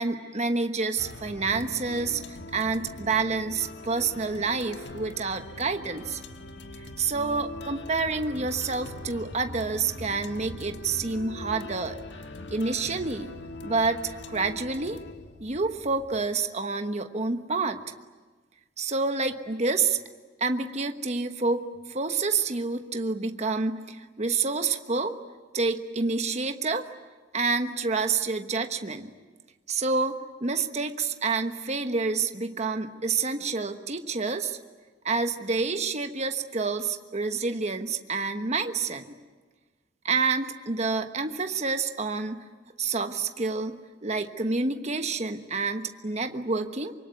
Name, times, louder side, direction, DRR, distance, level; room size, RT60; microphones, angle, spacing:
voice 1, 0.0-2.2 2.5-6.2 6.8-12.0 12.5-13.3 13.6-15.0 15.4-17.8 18.8-20.0 20.4-25.2 25.5-26.9 27.3-29.1 29.7-34.6 35.0-39.2 40.0-42.4 42.8-46.9, right 4 dB, 35° right, 7 dB, 1.2 m, -28 dB
sound 1, 1.0-16.3, left 1 dB, 65° left, 1.6 m, -42 dB
25.5 x 24.0 x 9.4 m, 1.3 s
head